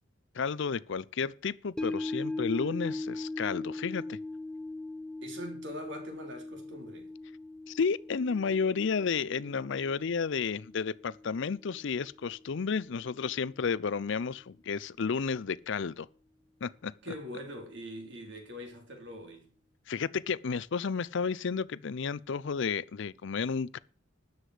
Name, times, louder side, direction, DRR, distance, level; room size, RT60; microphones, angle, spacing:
voice 1, 0.3-4.2 7.7-16.1 16.6-16.9 19.9-23.8, left 5 dB, 65° left, 0.5 m, -32 dB
sound 1, 1.8-12.2 12.5-12.6, left 2 dB, 5° left, 0.5 m, -40 dB
voice 2, 5.2-7.1 17.0-19.5, equal, 60° right, 3.6 m, -43 dB
13.0 x 9.6 x 5.0 m
head